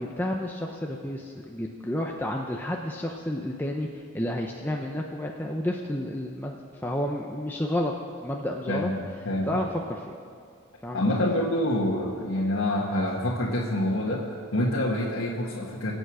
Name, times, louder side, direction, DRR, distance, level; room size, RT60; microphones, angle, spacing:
voice 1, 0.0-6.6 6.8-7.9 8.2-8.9 9.5-10.2 10.8-11.0, left 1 dB, 10° left, 0 dB, 0.6 m, -31 dB
voice 2, 8.7-9.6 10.9-15.9, left 1 dB, 85° left, -5 dB, 1.5 m, -27 dB
22.0 x 8.1 x 4.9 m, 2.2 s
head